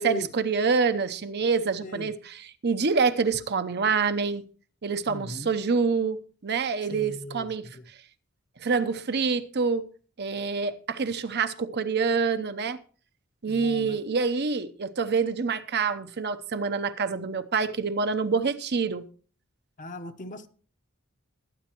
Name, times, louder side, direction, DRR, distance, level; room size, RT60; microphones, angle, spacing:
voice 1, 0.0-4.4 4.8-7.7 8.6-9.9 10.2-12.8 13.4-19.1, right 5 dB, 55° right, 0.7 m, -26 dB
voice 2, 5.1-5.5 6.9-7.8 13.5-14.0 19.8-20.5, left 1 dB, 40° left, 0.9 m, -37 dB
22.0 x 9.3 x 3.0 m
head